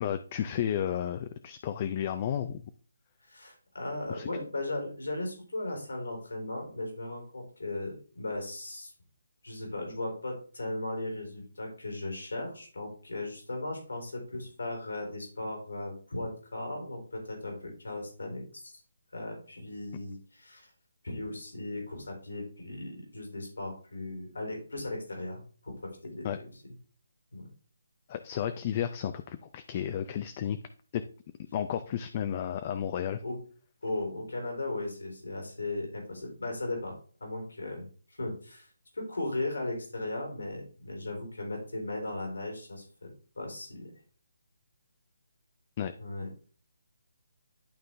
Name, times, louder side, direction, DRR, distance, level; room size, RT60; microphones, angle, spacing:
voice 1, 0.0-2.6 4.1-4.3 26.2-26.4 28.1-30.6 30.9-31.0 31.5-33.2 45.8-45.9, left 9 dB, 30° left, 9 dB, 0.5 m, -32 dB
voice 2, 3.3-8.9 9.4-18.7 19.1-20.7 21.0-26.3 27.3-27.5 33.2-33.4 33.8-38.7 38.9-43.1 43.4-43.9 46.0-46.3, left 2 dB, 85° left, 1 dB, 3.5 m, -37 dB
11.0 x 3.8 x 3.3 m, 0.40 s
hypercardioid pair, 160°, 0 cm